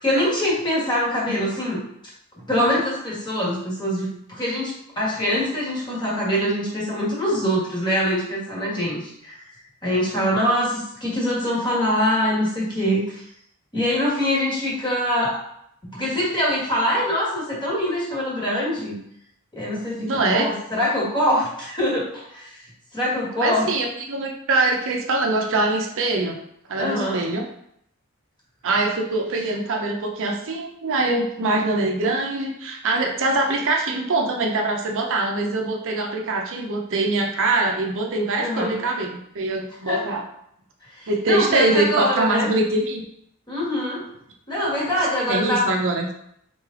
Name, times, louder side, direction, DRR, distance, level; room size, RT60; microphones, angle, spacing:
voice 1, 0.0-1.8 2.4-9.4 9.8-13.2 13.7-15.4 15.9-19.0 19.5-22.6 22.9-23.7 26.8-27.2 38.4-38.8 39.9-40.0 40.9-42.5 43.5-44.0 44.5-45.7, equal, 20° left, -5 dB, 1.4 m, -24 dB
voice 2, 20.0-20.5 23.4-26.4 26.7-27.4 28.6-40.2 41.1-43.0 45.3-46.1, right 2 dB, 60° right, 1 dB, 0.6 m, -23 dB
3.7 x 3.2 x 3.7 m, 0.73 s
head